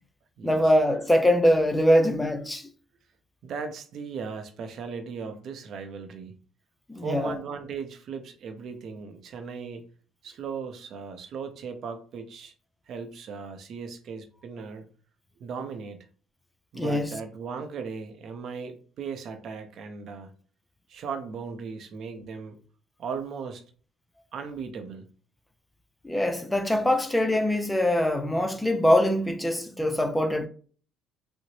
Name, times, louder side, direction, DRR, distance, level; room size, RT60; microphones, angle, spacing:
voice 1, 0.4-2.7 6.9-7.3 16.7-17.1 26.0-30.5, equal, 10° left, 0.5 m, -23 dB
voice 2, 3.4-6.3 7.0-9.9 10.2-12.5 12.9-14.9 15.4-16.0 16.7-20.3 20.9-22.6 23.0-23.6 24.3-25.1, right 5 dB, 60° right, 0.6 m, -37 dB
3.7 x 2.0 x 3.2 m
supercardioid pair, 80°, 0 cm